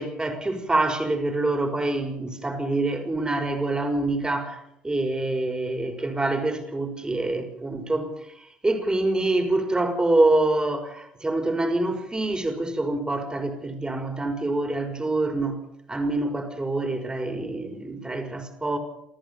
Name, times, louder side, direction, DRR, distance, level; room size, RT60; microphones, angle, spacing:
voice 1, 0.0-8.1 8.6-15.6 15.9-18.8, right 2 dB, 20° right, 5.8 m, -26 dB
27.5 x 14.0 x 7.3 m
hypercardioid pair, 65°, 4 cm